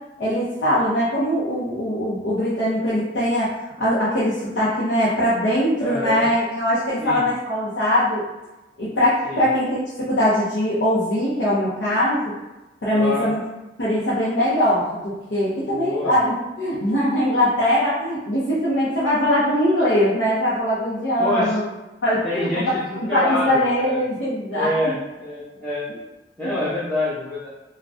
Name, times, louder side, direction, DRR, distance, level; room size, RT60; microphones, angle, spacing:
voice 1, 0.2-8.2 8.8-12.3 12.8-13.4 13.8-21.6 22.0-22.6 22.9-24.9 25.9-26.0 26.4-26.5, left 1 dB, 85° left, -9 dB, 0.7 m, -21 dB
voice 2, 5.8-6.3 7.0-7.2 9.2-9.4 13.0-13.3 15.7-16.1 21.2-21.5 22.2-24.0 24.5-25.8 26.4-27.5, left 1 dB, 10° left, -10 dB, 0.6 m, -26 dB
3.4 x 2.2 x 2.5 m, 1.1 s
head